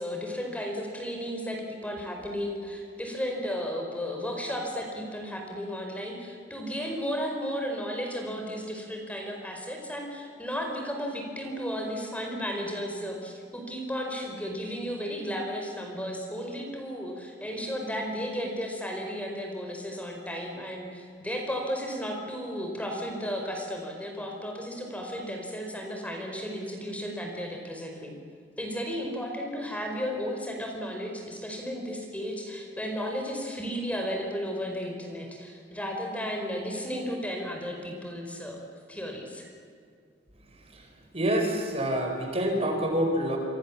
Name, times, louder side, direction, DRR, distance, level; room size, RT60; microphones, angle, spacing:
voice 1, 0.0-28.1 28.6-38.6 38.9-39.5, equal, 10° left, 2 dB, 4.9 m, -34 dB
voice 2, 41.1-43.4, equal, 35° right, 3 dB, 4.7 m, -26 dB
29.5 x 24.5 x 7.4 m, 2.3 s
head